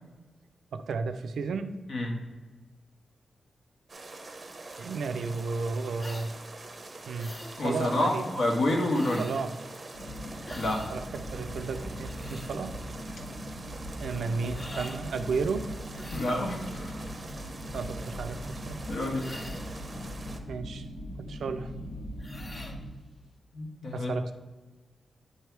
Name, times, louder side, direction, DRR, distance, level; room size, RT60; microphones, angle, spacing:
voice 1, 0.7-1.8 4.8-6.3 7.1-8.2 9.2-9.5 10.9-12.8 14.0-15.7 17.7-18.8 20.5-20.9 21.2-21.7 23.9-24.3, right 4 dB, 85° right, 9 dB, 0.4 m, -33 dB
sound 1, 3.9-20.4, right 3 dB, 25° right, 0.7 m, -45 dB
sound 2, 6.0-6.3 7.2-7.6 8.9-9.5 10.4-10.9 11.9-12.5 14.5-15.0 15.9-16.5 19.1-19.8 22.2-22.8, left 1 dB, 20° left, 0.5 m, -45 dB
voice 2, 7.6-9.2 10.5-10.8 16.1-17.0 18.9-19.3 22.5-22.7 23.5-24.1, left 1 dB, 65° left, 0 dB, 1.4 m, -28 dB
sound 3, 9.9-22.9, equal, 80° left, 2.4 m, -40 dB
9.6 x 3.3 x 4.6 m, 1.3 s
wide cardioid pair, 160°, 0 cm